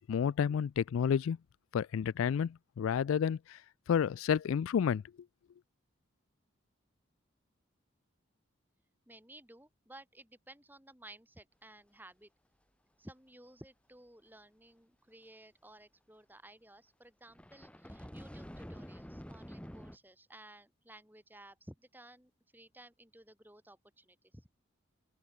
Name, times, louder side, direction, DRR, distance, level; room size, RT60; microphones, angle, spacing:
voice 1, 0.1-1.4 1.7-3.6 3.9-5.0, left 7 dB, 85° left, 0.3 m, -30 dB
voice 2, 9.1-12.3 13.0-24.5, right 1 dB, 10° right, 6.0 m, -56 dB
sound 1, 17.3-20.0, equal, 5° left, 2.6 m, -48 dB
open air
head